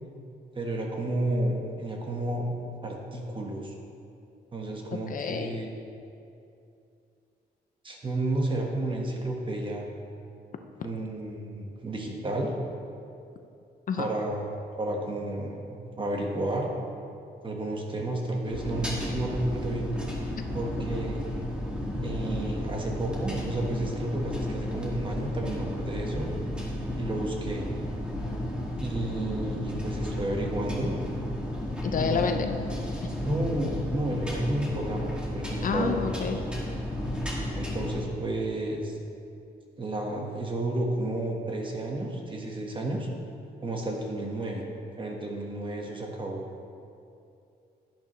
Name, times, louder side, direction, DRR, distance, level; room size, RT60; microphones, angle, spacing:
voice 1, 0.5-2.6 2.8-3.7 4.5-5.7 7.8-9.8 10.8-12.5 14.0-16.7 17.4-19.9 20.5-21.2 22.0-26.3 27.0-27.7 28.8-30.9 32.0-32.4 33.2-36.0 37.5-39.0 39.8-43.1 43.6-44.6 45.0-46.4, right 1 dB, 30° right, 0 dB, 1.4 m, -31 dB
voice 2, 4.9-5.6 13.9-14.1 31.8-32.5 35.6-36.4, left 6 dB, 50° left, 6 dB, 0.6 m, -29 dB
sound 1, 18.4-38.0, left 1 dB, 5° right, 1.9 m, -33 dB
10.5 x 10.5 x 3.2 m, 2.6 s
cardioid pair, 125°, 18 cm